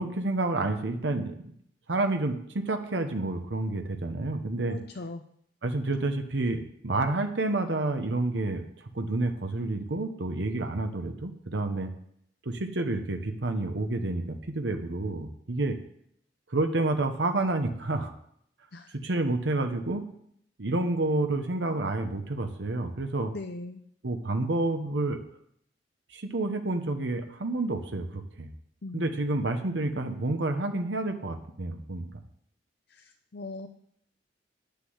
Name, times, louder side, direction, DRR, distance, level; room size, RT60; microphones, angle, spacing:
voice 1, 0.0-1.5 1.9-4.8 5.6-11.9 12.4-15.8 16.5-18.1 18.9-20.0 20.6-23.3 24.0-25.2 26.1-28.5 28.9-32.0, right 2 dB, 80° right, 6 dB, 1.0 m, -29 dB
voice 2, 4.7-5.2 18.7-18.9 23.3-23.8 28.8-29.2 32.9-33.7, left 2 dB, 60° left, 4 dB, 0.7 m, -39 dB
9.7 x 6.8 x 7.9 m, 0.70 s
head